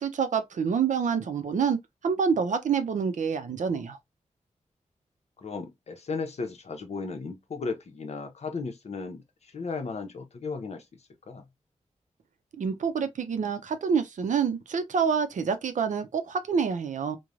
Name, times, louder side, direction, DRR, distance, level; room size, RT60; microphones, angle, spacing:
voice 1, 0.0-4.0 12.6-17.2, right 6 dB, 75° right, 0.5 m, -27 dB
voice 2, 5.4-10.9 11.3-11.4, left 4 dB, 55° left, 0.7 m, -35 dB
3.1 x 2.1 x 2.4 m
wide cardioid pair, 100°, 13 cm